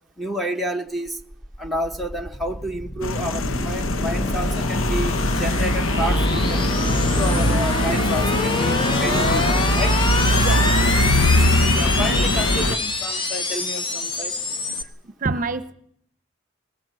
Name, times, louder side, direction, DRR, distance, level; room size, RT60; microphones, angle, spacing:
voice 1, 0.2-1.2 1.6-6.7 7.0-10.0 11.7-14.3, equal, ahead, 1 dB, 1.0 m, -30 dB
sound 1, 1.1-14.8, left 2 dB, 25° left, 1.2 m, -27 dB
sound 2, 3.0-12.8, left 1 dB, 80° left, 1.0 m, -21 dB
sound 3, 5.9-10.9, right 2 dB, 20° right, 1.6 m, -36 dB
voice 2, 10.4-11.1 15.0-15.7, right 3 dB, 40° right, 13 dB, 0.9 m, -28 dB
20.5 x 19.5 x 7.7 m, 0.70 s
head